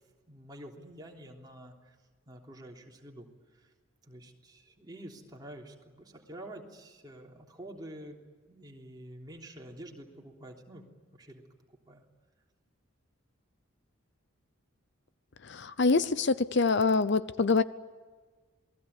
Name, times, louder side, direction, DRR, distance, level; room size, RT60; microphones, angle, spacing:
voice 1, 0.3-1.9 2.3-3.7 4.0-8.2 8.5-10.8 11.1-11.4 11.9-12.0, right 1 dB, 20° right, -1 dB, 3.4 m, -48 dB
voice 2, 15.4-17.6, left 4 dB, 55° left, 15 dB, 0.7 m, -25 dB
28.0 x 20.0 x 8.4 m, 1.4 s
head